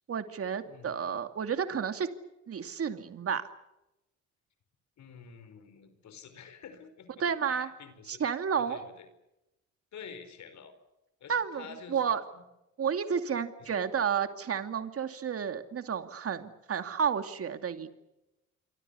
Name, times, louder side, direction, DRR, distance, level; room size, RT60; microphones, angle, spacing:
voice 1, 0.1-2.1 2.5-3.5 7.2-7.7 8.1-8.9 11.3-12.2 12.8-17.9, right 7 dB, 50° right, 8 dB, 2.6 m, -31 dB
voice 2, 0.7-1.0 5.0-8.2 8.6-9.1 9.9-10.7 11.2-12.4 13.6-13.8, left 6 dB, 65° left, 10 dB, 5.1 m, -49 dB
28.0 x 24.5 x 7.0 m, 0.93 s
cardioid pair, 90°, 30 cm